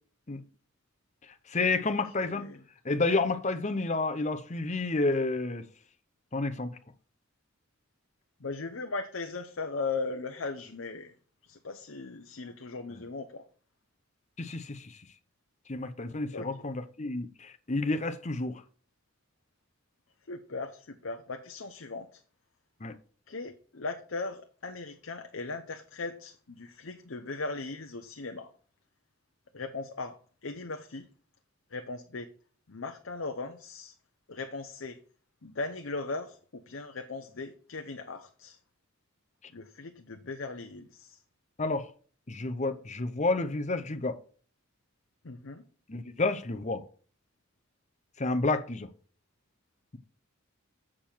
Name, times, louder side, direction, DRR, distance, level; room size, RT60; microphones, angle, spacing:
voice 1, 1.5-2.5 2.8-5.6 6.3-6.7 12.9-13.0 14.4-15.0 15.7-18.6 22.8-22.9 41.6-41.9 42.3-44.2 45.9-46.8 48.2-48.9, left 3 dB, 35° left, 0.8 m, -30 dB
voice 2, 2.1-2.6 8.4-11.1 11.5-13.4 16.3-16.5 20.3-22.2 23.3-28.5 29.5-30.2 30.4-31.1 31.7-32.3 32.7-33.9 34.3-35.0 35.4-38.6 39.5-41.2 45.2-45.6, left 3 dB, 65° left, 0.8 m, -38 dB
7.3 x 6.9 x 4.5 m
head